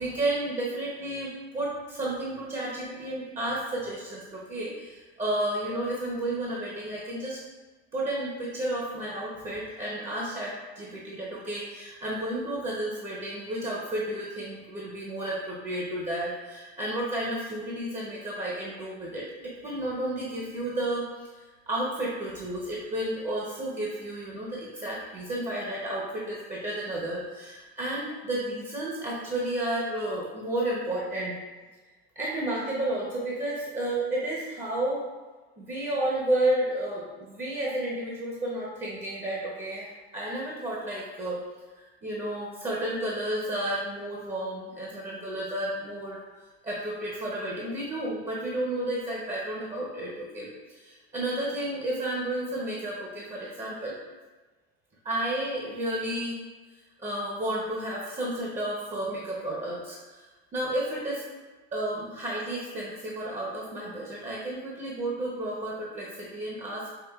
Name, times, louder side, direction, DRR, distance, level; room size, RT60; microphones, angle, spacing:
voice 1, 0.0-7.4 7.9-31.3 32.1-35.1 35.6-41.4 41.7-46.2 46.6-53.9 55.0-56.4 56.7-60.2 60.5-61.3 61.7-66.9, right 1 dB, 20° right, -5 dB, 0.8 m, -32 dB
5.5 x 2.5 x 2.4 m, 1.3 s
supercardioid pair, 105°, 34 cm